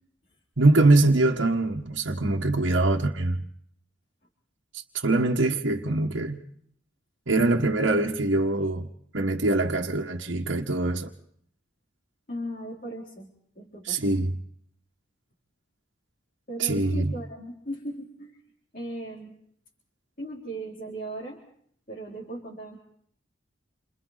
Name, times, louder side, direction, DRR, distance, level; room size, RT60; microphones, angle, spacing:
voice 1, 0.6-3.4 5.0-6.4 7.3-8.9 9.1-11.1 13.8-14.3 16.6-17.1, right 2 dB, 85° right, 1.6 m, -23 dB
voice 2, 12.3-14.1 16.5-18.4 18.7-19.4 20.2-21.4 21.9-22.8, right 1 dB, 45° left, 4.0 m, -37 dB
29.5 x 27.0 x 4.2 m
head